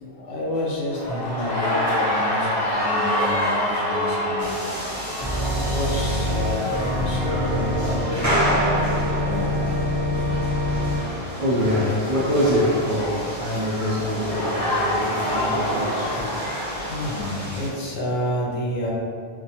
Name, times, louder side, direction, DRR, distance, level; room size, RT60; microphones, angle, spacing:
voice 1, 0.1-4.4 5.0-9.6 16.9-18.9, left 1 dB, 85° left, -4 dB, 0.9 m, -29 dB
sound 1, 0.9-17.5, left 1 dB, 50° left, 1.4 m, -28 dB
sound 2, 4.4-17.7, right 1 dB, 20° right, 0.7 m, -30 dB
Organ, 5.2-11.0, left 1 dB, 20° left, 1.3 m, -25 dB
voice 2, 10.6-16.2, equal, 55° right, -8 dB, 0.4 m, -26 dB
2.4 x 2.1 x 2.8 m, 2.1 s
omnidirectional pair, 1.1 m